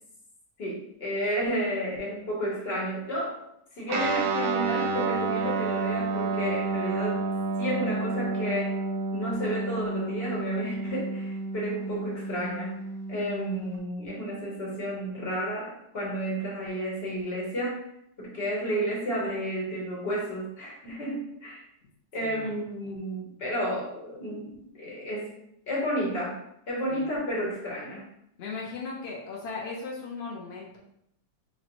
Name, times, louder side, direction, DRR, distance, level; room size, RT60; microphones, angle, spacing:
voice 1, 0.6-3.4 3.8-7.2 7.6-8.8 9.1-12.8 13.1-17.8 18.2-21.6 22.1-25.4 25.7-26.4 26.7-28.1, equal, 40° left, -4 dB, 1.1 m, -31 dB
Guitar, 3.9-13.8, right 3 dB, 75° right, 1.1 m, -30 dB
voice 2, 22.2-22.9 26.9-27.1 28.4-30.8, left 4 dB, 80° left, -2 dB, 0.5 m, -38 dB
5.0 x 2.1 x 3.0 m, 0.75 s
omnidirectional pair, 1.9 m